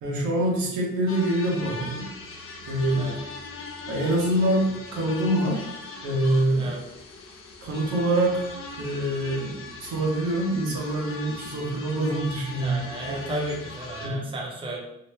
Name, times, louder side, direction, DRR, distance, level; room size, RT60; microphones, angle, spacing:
voice 1, 0.0-2.0 2.7-3.3 3.9-5.6 6.0-6.7 7.6-8.5 8.8-13.2 14.0-14.2, right 1 dB, 80° right, -3 dB, 1.1 m, -25 dB
sound 1, 1.1-14.1, left 3 dB, 45° left, 0.6 m, -40 dB
voice 2, 12.6-14.8, right 1 dB, 15° right, -2 dB, 0.7 m, -33 dB
3.0 x 2.1 x 3.3 m, 0.84 s
cardioid pair, 90°, 30 cm